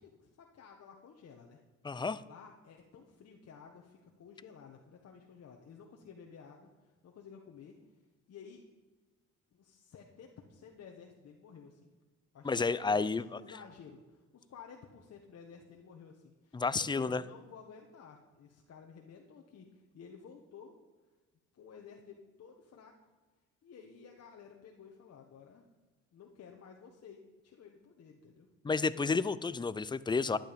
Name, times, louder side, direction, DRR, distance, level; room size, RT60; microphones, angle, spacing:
voice 1, 0.0-1.6 2.2-7.8 8.3-8.6 9.5-11.9 12.3-13.1 13.3-20.8 21.5-23.1 23.6-25.7 26.1-28.5, left 6 dB, 55° left, 1 dB, 1.3 m, -54 dB
voice 2, 1.8-2.2 12.4-13.4 16.5-17.2 28.6-30.4, left 4 dB, 15° left, 17 dB, 0.4 m, -31 dB
12.0 x 9.1 x 5.1 m, 1.3 s
cardioid pair, 90°, 30 cm